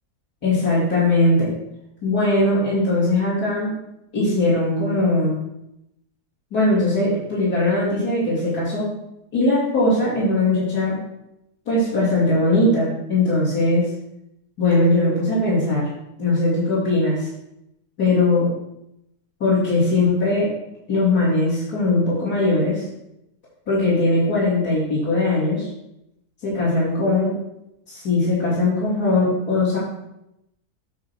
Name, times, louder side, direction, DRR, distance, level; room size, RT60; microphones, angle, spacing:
voice 1, 0.4-1.5 2.0-3.7 4.1-5.4 6.5-8.9 9.3-10.9 11.7-13.9 14.6-15.9 16.2-17.3 18.0-18.5 19.4-20.5 20.9-22.8 23.7-25.7 26.4-27.3 27.9-29.8, left 2 dB, 70° left, -10 dB, 3.3 m, -20 dB
8.8 x 3.7 x 6.1 m, 0.84 s
omnidirectional pair, 1.7 m